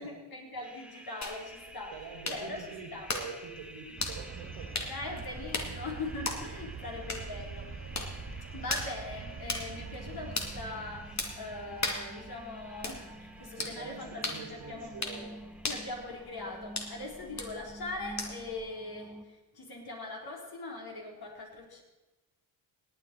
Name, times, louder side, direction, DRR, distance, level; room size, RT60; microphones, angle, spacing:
voice 1, 0.0-1.9 2.3-2.7 2.9-3.1 4.9-7.7 8.5-14.9 15.7-21.8, left 2 dB, 55° left, -1 dB, 4.5 m, -41 dB
sound 1, 0.6-19.3, right 1 dB, ahead, 1.5 m, -50 dB
sound 2, 1.2-18.6, left 3 dB, 35° left, 2.4 m, -40 dB
voice 2, 1.9-4.9 5.7-5.8 13.6-15.4, right 5 dB, 80° right, 2 dB, 2.6 m, -45 dB
sound 3, 4.0-13.8, right 6 dB, 30° right, 0.8 m, -45 dB
17.5 x 9.4 x 4.7 m, 1.1 s
supercardioid pair, 60°, 45 cm